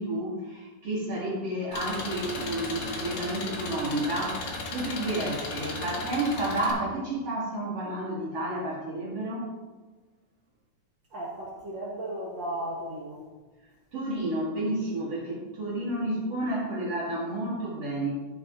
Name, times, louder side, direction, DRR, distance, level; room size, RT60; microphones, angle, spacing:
voice 1, 0.0-9.5 13.9-18.1, right 1 dB, 45° right, -9 dB, 2.8 m, -31 dB
Engine, 1.7-6.7, left 3 dB, 55° left, 1.8 m, -35 dB
voice 2, 11.1-13.3, right 1 dB, 75° right, -4 dB, 1.0 m, -35 dB
14.5 x 4.9 x 3.8 m, 1.3 s
omnidirectional pair, 4.2 m